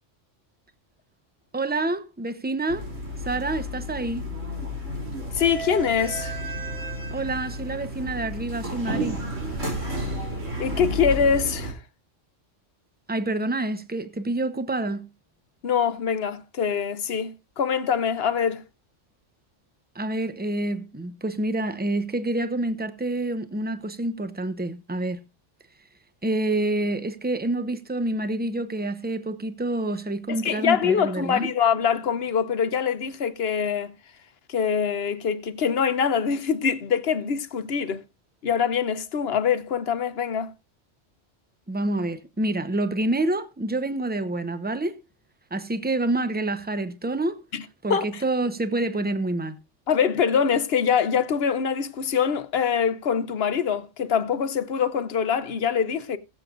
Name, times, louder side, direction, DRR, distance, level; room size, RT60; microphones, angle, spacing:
voice 1, 1.5-2.9 3.2-4.3 7.1-9.2 13.1-15.1 19.9-25.2 26.2-31.5 41.7-45.0 45.5-47.4 47.8-49.6, right 2 dB, 10° right, 0.7 m, -27 dB
sound 1, 2.7-11.7, equal, 90° right, 3.5 m, -31 dB
voice 2, 5.3-6.3 10.6-11.8 15.6-18.6 30.3-33.9 34.5-38.0 38.4-40.5 47.5-47.6 47.9-48.2 49.9-56.2, left 7 dB, 55° left, 1.0 m, -24 dB
21.0 x 7.6 x 2.5 m
omnidirectional pair, 1.3 m